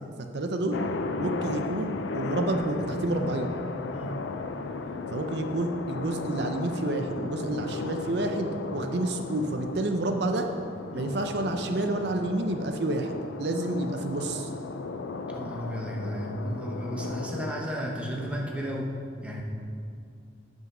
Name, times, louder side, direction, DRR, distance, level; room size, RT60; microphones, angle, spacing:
voice 1, 0.2-0.8 1.2-3.5 5.1-10.5 10.9-14.5, right 2 dB, 60° right, 5 dB, 0.6 m, -29 dB
sound 1, 0.7-18.8, left 3 dB, 85° left, 0.5 m, -36 dB
voice 2, 15.3-19.0 19.2-19.4, equal, 5° right, -2 dB, 0.8 m, -33 dB
7.9 x 5.5 x 6.0 m, 2.4 s
head